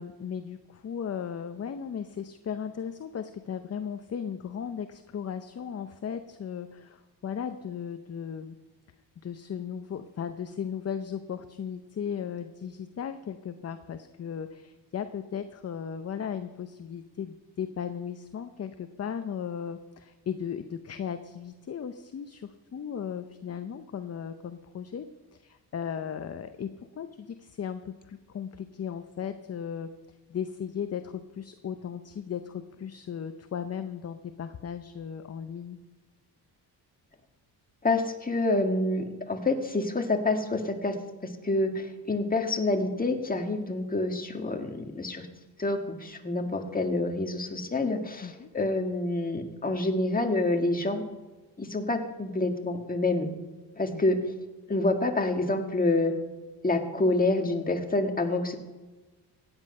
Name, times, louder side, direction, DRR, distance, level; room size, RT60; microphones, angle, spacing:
voice 1, 0.0-8.5 9.2-25.1 25.3-26.7 27.0-29.9 30.3-35.8 48.2-48.5 53.9-54.0, left 8 dB, 35° left, 9 dB, 0.7 m, -36 dB
voice 2, 37.8-41.0 41.4-45.3 45.6-51.0 51.6-53.3 53.8-54.2 54.7-56.2 56.6-58.6, left 2 dB, 20° left, 4 dB, 1.7 m, -27 dB
16.0 x 9.9 x 5.5 m, 1.2 s
cardioid pair, 95°, 41 cm